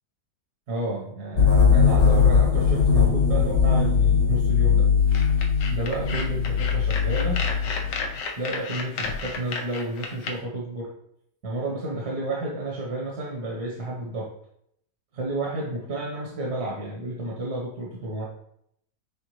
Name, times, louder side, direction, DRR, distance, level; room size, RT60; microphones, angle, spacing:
voice 1, 0.7-4.9 5.7-7.5 8.4-10.9 11.4-14.3 15.1-18.3, right 1 dB, 65° right, -3 dB, 1.7 m, -31 dB
sound 1, 1.4-8.1, left 6 dB, 65° left, 1.9 m, -20 dB
sound 2, 5.1-10.3, left 4 dB, 85° left, 1.5 m, -32 dB
8.9 x 3.5 x 3.1 m, 0.73 s
omnidirectional pair, 1.9 m